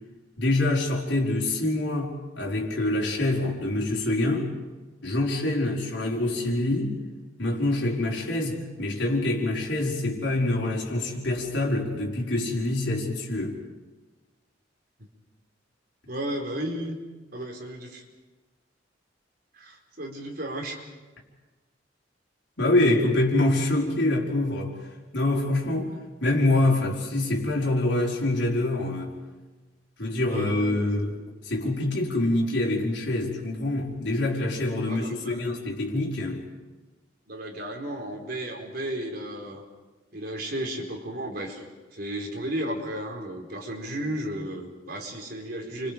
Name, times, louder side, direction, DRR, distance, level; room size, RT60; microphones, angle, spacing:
voice 1, 0.4-4.5 5.0-7.0 7.4-13.6 22.6-24.7 25.1-25.9 26.2-29.1 30.0-31.1 31.4-36.4, left 2 dB, 70° left, -2 dB, 4.9 m, -25 dB
voice 2, 16.1-17.0 17.3-18.0 19.6-20.8 30.3-31.1 34.9-35.4 37.3-39.6 40.1-41.6 41.9-45.9, right 1 dB, 55° right, 1 dB, 4.5 m, -34 dB
30.0 x 25.0 x 5.2 m, 1.2 s
head